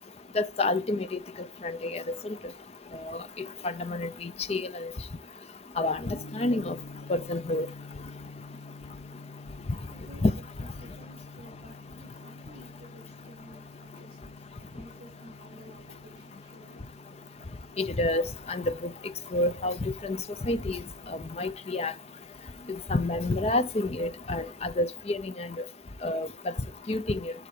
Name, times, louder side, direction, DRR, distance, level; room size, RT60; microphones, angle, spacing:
voice 1, 0.3-1.2 1.6-2.4 3.1-3.2 3.6-4.9 5.8-6.8 7.1-7.7 10.2-10.3 17.8-18.7 19.3-20.2 20.4-20.8 21.1-21.9 22.9-25.5 26.0-26.3 26.9-27.3, left 2 dB, 35° left, 0.5 m, -29 dB
Gong, 6.0-24.6, left 3 dB, 80° left, 0.8 m, -49 dB
voice 2, 9.3-17.8, equal, 65° right, 4.9 m, -53 dB
11.0 x 4.0 x 4.8 m
head